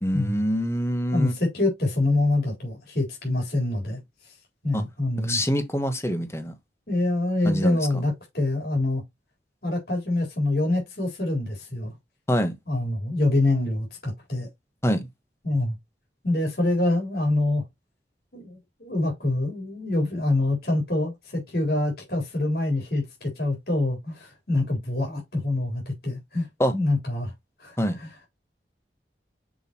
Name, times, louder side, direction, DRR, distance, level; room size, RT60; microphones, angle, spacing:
voice 1, 0.0-1.3 4.7-4.8 5.2-6.5 7.4-7.8 12.3-12.5 14.8-15.1 26.6-26.7 27.8-28.0, equal, 15° left, 1.3 m, -25 dB
voice 2, 1.1-4.4 4.6-5.4 6.9-9.0 9.6-11.9 12.7-14.5 15.4-15.8 16.2-17.6 18.3-27.3 27.6-28.1, left 2 dB, 60° left, 4.0 m, -26 dB
6.6 x 6.3 x 2.9 m
head